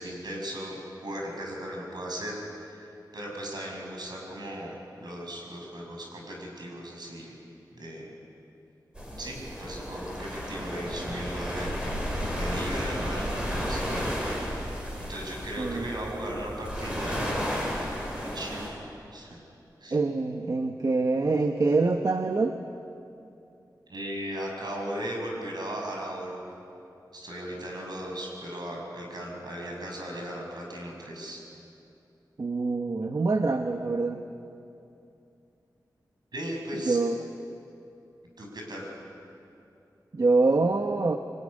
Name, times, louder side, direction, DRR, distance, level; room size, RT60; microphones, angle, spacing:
voice 1, 0.0-7.3 7.7-8.1 9.2-11.7 12.3-14.1 15.1-17.8 18.2-18.8 19.1-19.4 19.8-20.0 23.9-26.4 27.1-31.4 36.3-37.0 38.4-38.9, right 1 dB, 70° right, 0 dB, 6.7 m, -37 dB
sound 1, 8.9-18.7, equal, 15° right, 6.2 m, -33 dB
voice 2, 15.6-15.9 19.9-22.6 32.4-34.2 36.8-37.1 40.1-41.2, right 3 dB, 55° right, 5 dB, 1.1 m, -25 dB
25.0 x 19.5 x 9.9 m, 2.7 s
wide cardioid pair, 95°, 7 cm